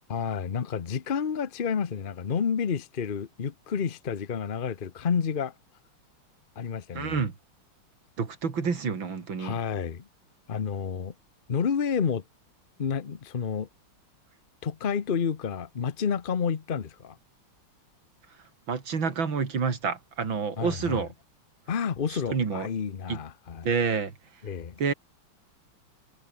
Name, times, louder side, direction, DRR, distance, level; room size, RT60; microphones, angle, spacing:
voice 1, 0.1-5.5 6.6-7.2 9.4-10.0 10.5-11.1 11.5-12.2 12.8-13.7 14.6-17.2 20.6-21.0 21.7-23.7 24.4-24.8, left 6 dB, 50° left, 0.6 m, -30 dB
voice 2, 6.9-7.4 8.2-9.6 18.7-21.1 22.1-22.7 23.1-23.2 23.6-24.1 24.8-24.9, right 5 dB, 65° right, 3.6 m, -28 dB
omnidirectional pair, 2.3 m